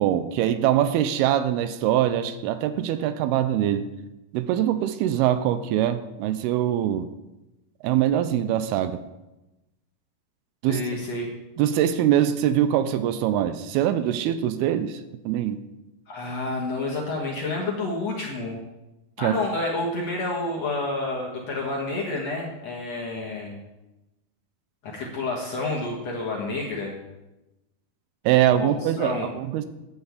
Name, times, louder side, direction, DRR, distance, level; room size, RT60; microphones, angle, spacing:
voice 1, 0.0-3.9 4.3-7.1 7.8-9.0 10.6-10.8 11.6-15.6 19.2-19.4 28.3-29.7, right 11 dB, 85° right, 12 dB, 2.5 m, -23 dB
voice 2, 10.7-11.3 16.1-18.6 19.2-23.6 24.8-27.0 28.6-29.3, left 2 dB, 60° left, -2 dB, 1.9 m, -29 dB
9.4 x 5.6 x 8.4 m, 1.0 s
omnidirectional pair, 4.6 m